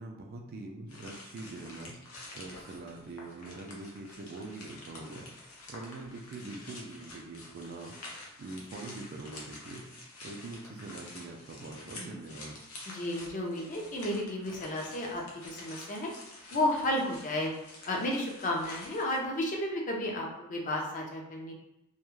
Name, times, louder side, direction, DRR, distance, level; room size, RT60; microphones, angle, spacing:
voice 1, 0.0-2.0 2.3-5.3 5.7-8.0 8.4-9.8 10.2-12.6, right 2 dB, 45° right, 2 dB, 0.3 m, -43 dB
sound 1, 0.9-19.2, left 2 dB, 85° left, 0.6 m, -49 dB
voice 2, 12.9-16.1 16.5-17.5 17.9-21.5, left 1 dB, 35° left, 0 dB, 0.5 m, -32 dB
2.2 x 2.0 x 3.0 m, 0.91 s
head